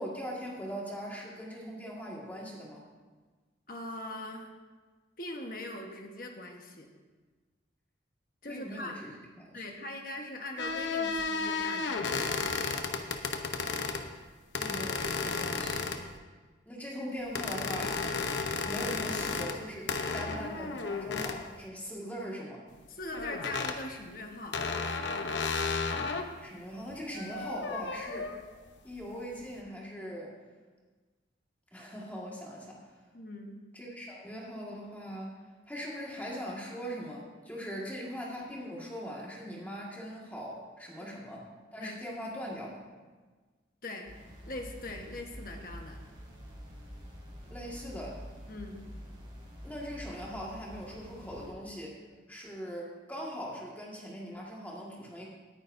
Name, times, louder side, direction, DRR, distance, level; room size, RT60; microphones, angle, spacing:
voice 1, 0.0-2.8 8.5-9.1 9.4-9.6 14.5-15.9 16.7-18.0 18.6-22.6 26.4-28.3 28.8-30.3 31.7-32.8 33.7-35.4 35.7-42.9 47.5-48.2 49.6-52.0 52.3-55.3, equal, 10° left, -4 dB, 1.9 m, -41 dB
voice 2, 3.7-4.5 5.2-6.9 8.4-9.0 9.5-12.6 22.9-24.6 33.1-33.6 41.0-41.1 41.8-41.9 43.8-44.1 44.5-46.0 48.5-48.9, left 2 dB, 50° left, 2 dB, 1.3 m, -41 dB
sound 1, 10.6-14.0 14.5-16.2 17.3-19.6 19.9-21.4 23.1-23.8 24.5-26.3 26.9-28.4, left 4 dB, 75° left, 0.9 m, -33 dB
sound 2, 44.0-51.5, equal, 25° right, 3.1 m, -47 dB
18.5 x 9.7 x 2.7 m, 1.4 s
head